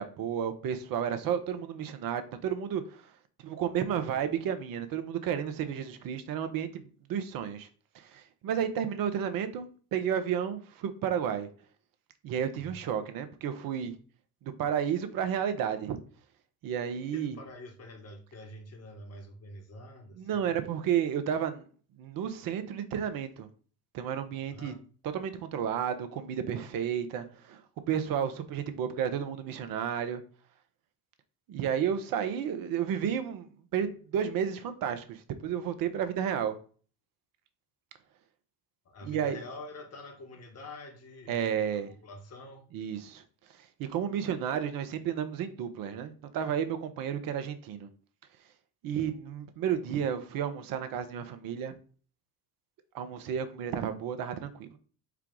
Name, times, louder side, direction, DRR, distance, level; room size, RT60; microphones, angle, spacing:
voice 1, 0.0-3.1 3.4-6.7 7.1-7.7 7.9-11.5 12.2-13.9 14.4-16.0 16.6-17.4 20.1-21.6 22.0-23.5 23.9-24.7 25.1-27.6 27.9-30.2 31.5-36.5 39.0-39.4 41.3-41.9 42.7-43.2 43.8-47.9 48.8-51.7 52.9-54.8, right 8 dB, 50° right, 0.8 m, -32 dB
voice 2, 12.5-12.8 16.9-20.5 24.5-24.8 38.8-42.7, left 1 dB, 35° left, 1.3 m, -47 dB
4.6 x 2.3 x 3.8 m
hypercardioid pair, 65°, 45 cm